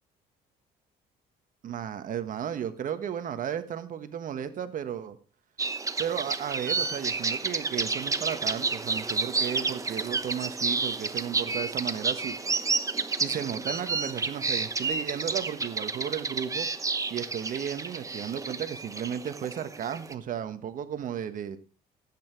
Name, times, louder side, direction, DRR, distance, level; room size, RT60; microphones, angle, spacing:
voice 1, 1.6-5.2 6.0-12.4 13.2-16.7 17.1-21.6, right 9 dB, 50° right, 10 dB, 1.3 m, -34 dB
sound 1, 5.6-20.1, right 4 dB, 20° right, 0.9 m, -31 dB
15.0 x 8.8 x 4.6 m, 0.38 s
cardioid pair, 110°, 17 cm